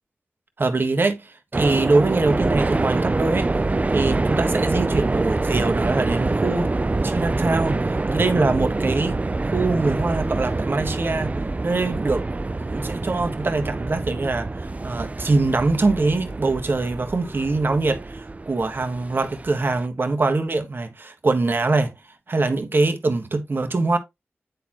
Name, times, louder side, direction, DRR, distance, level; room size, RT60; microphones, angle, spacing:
voice 1, 0.6-3.5 3.9-6.7 7.0-11.4 11.6-12.2 12.7-21.9 22.3-24.0, right 3 dB, 55° right, 1.4 m, -23 dB
sound 1, 1.5-19.9, right 2 dB, 35° right, 0.5 m, -25 dB
9.2 x 4.2 x 3.0 m
cardioid pair, 45°, 4 cm